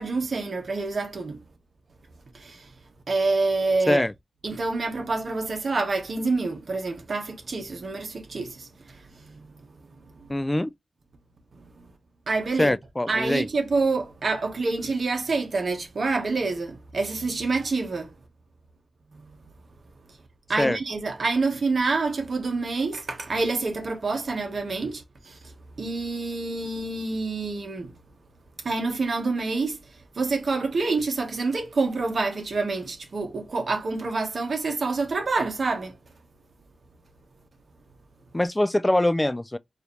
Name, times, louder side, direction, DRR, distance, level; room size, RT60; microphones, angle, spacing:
voice 1, 0.0-1.4 2.3-2.7 3.1-4.0 4.4-9.6 10.2-10.3 12.3-12.7 13.1-18.1 20.5-25.5 25.8-27.9 28.6-29.8 30.1-36.0, right 3 dB, 65° right, 1.3 m, -27 dB
voice 2, 10.3-10.7 12.6-13.5 20.6-20.8 38.3-39.6, left 1 dB, 20° left, 0.3 m, -23 dB
4.7 x 2.7 x 3.2 m
cardioid pair, 45°, 0 cm